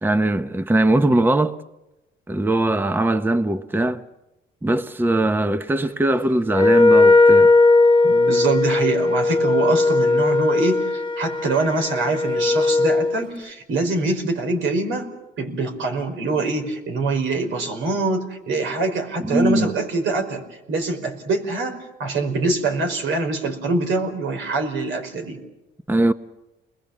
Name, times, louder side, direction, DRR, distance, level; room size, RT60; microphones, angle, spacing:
voice 1, 0.0-1.6 2.3-4.0 4.6-7.5 19.2-19.7 25.9-26.1, right 1 dB, 10° right, 0.9 m, -20 dB
Wind instrument woodwind instrument, 6.5-13.2, left 3 dB, 25° left, 0.9 m, -17 dB
voice 2, 8.0-15.1 15.4-20.4 20.7-25.4, right 3 dB, 80° right, 5.1 m, -24 dB
29.0 x 21.5 x 7.3 m
cardioid pair, 90°, 20 cm